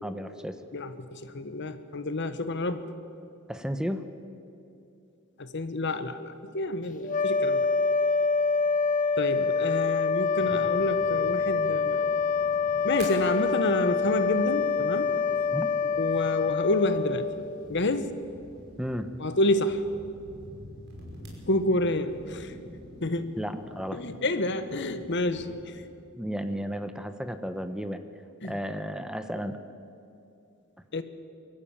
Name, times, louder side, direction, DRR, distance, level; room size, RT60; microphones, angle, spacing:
voice 1, 0.0-0.6 3.5-4.1 15.5-15.7 18.8-19.1 23.4-24.0 26.2-28.1 28.4-29.6, equal, 5° right, 9 dB, 0.8 m, -33 dB
voice 2, 0.7-2.9 5.4-7.7 9.2-12.1 12.8-15.1 15.8-17.3 17.7-18.1 19.2-19.8 21.5-22.5 23.0-23.4 23.9-25.8 28.4-28.5 30.9-31.0, left 2 dB, 60° left, 11 dB, 1.2 m, -28 dB
sound 1, 7.0-17.7, left 5 dB, 40° left, 1.2 m, -26 dB
sound 2, 10.4-25.6, equal, 55° right, 5.4 m, -47 dB
23.0 x 14.0 x 8.8 m, 2.7 s
head